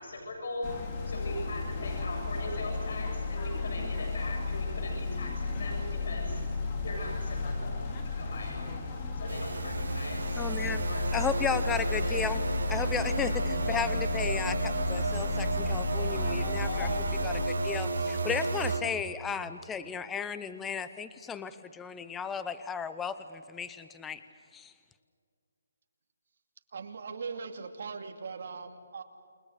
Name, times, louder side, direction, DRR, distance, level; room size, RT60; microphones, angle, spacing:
voice 1, 0.0-10.5 10.9-11.5 12.0-12.2, left 1 dB, 65° left, 1 dB, 7.6 m, -41 dB
sound 1, 0.6-17.5, left 4 dB, 25° left, 3.1 m, -33 dB
sound 2, 9.3-18.8, right 3 dB, 75° right, 4.2 m, -32 dB
voice 2, 10.3-10.8 11.1-24.2 24.5-24.7, left 6 dB, 5° left, 12 dB, 0.7 m, -35 dB
voice 3, 26.7-29.0, right 5 dB, 55° right, 5 dB, 2.5 m, -40 dB
29.0 x 21.5 x 6.7 m, 2.2 s
hypercardioid pair, 170°, 0 cm